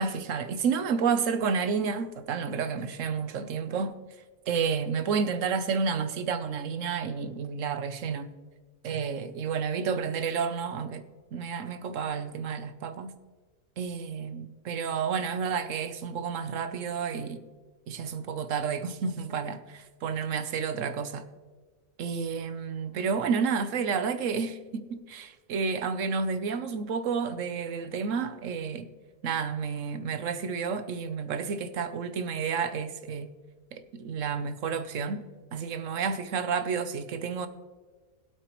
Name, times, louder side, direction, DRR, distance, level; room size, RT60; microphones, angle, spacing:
voice 1, 0.0-4.0 4.5-8.3 8.8-11.0 11.3-13.2 13.8-17.4 17.9-21.3 22.0-28.9 29.2-33.3 33.7-35.3 35.5-37.5, right 6 dB, 65° right, 1.1 m, -30 dB
21.5 x 8.1 x 3.0 m
omnidirectional pair, 1.5 m